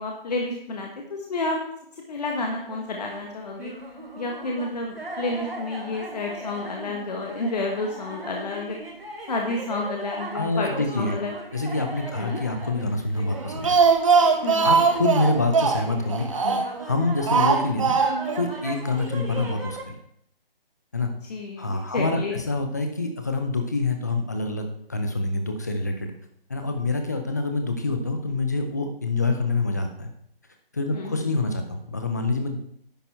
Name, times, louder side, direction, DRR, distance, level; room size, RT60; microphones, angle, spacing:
voice 1, 0.0-1.6 2.1-3.7 4.2-8.8 9.3-10.7 11.0-11.3 12.2-12.4 14.4-14.7 21.3-22.4 30.9-31.3, left 2 dB, 45° left, 0 dB, 1.4 m, -30 dB
sound 1, 2.4-19.8, right 1 dB, 85° right, 3.1 m, -39 dB
voice 2, 10.3-11.2 11.5-13.8 14.6-18.0 18.3-20.0 20.9-21.1 21.6-26.1 26.5-30.1 30.7-32.6, left 3 dB, 20° left, 5 dB, 0.5 m, -26 dB
Speech, 13.3-16.8 17.3-18.4 18.7-18.8 19.1-19.2, right 5 dB, 35° right, 0.8 m, -21 dB
10.5 x 6.6 x 4.3 m, 0.68 s
figure-of-eight pair, 160°, 29 cm